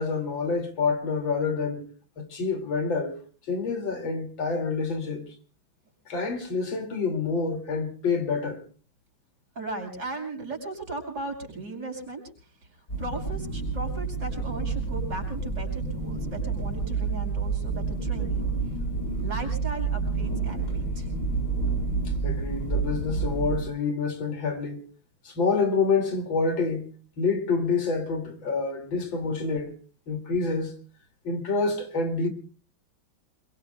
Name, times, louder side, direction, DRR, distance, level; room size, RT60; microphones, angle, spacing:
voice 1, 0.0-1.9 2.2-3.2 3.5-5.3 6.1-8.6 22.2-24.8 25.2-26.9 27.2-29.7 30.1-30.7 31.2-32.3, left 4 dB, 70° left, 3.1 m, -27 dB
voice 2, 9.5-12.2 13.0-18.5 19.2-21.1, right 2 dB, 60° right, 6.1 m, -37 dB
sound 1, 12.9-23.6, right 4 dB, 40° left, 7.6 m, -29 dB
27.5 x 22.5 x 2.2 m
omnidirectional pair, 2.2 m